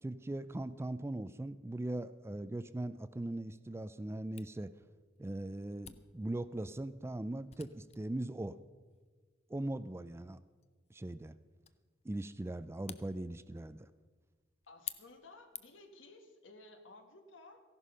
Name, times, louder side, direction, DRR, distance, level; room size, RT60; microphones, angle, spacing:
voice 1, 0.0-4.7 5.2-8.6 9.5-10.4 10.9-11.3 12.0-13.9, right 1 dB, 15° right, 14 dB, 0.4 m, -40 dB
Camera, 4.4-16.0, left 10 dB, 35° left, 0.6 m, -54 dB
voice 2, 14.7-17.6, left 2 dB, 70° left, 6 dB, 1.6 m, -56 dB
15.0 x 11.5 x 5.5 m, 1.4 s
head